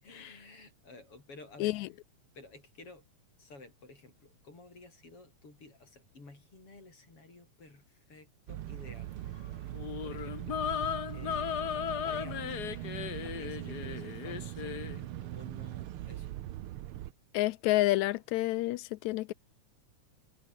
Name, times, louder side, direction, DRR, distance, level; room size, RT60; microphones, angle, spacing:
voice 1, 0.0-1.8 2.3-3.1 3.4-9.7 10.0-10.6 11.1-12.8 13.2-16.4, left 3 dB, 50° left, 7.4 m, -53 dB
sound 1, 8.5-17.1, right 13 dB, 75° right, 1.2 m, -41 dB
sound 2, 9.7-15.0, left 9 dB, 65° left, 1.0 m, -36 dB
voice 2, 17.3-19.3, left 17 dB, 80° left, 1.9 m, -29 dB
omnidirectional pair, 3.4 m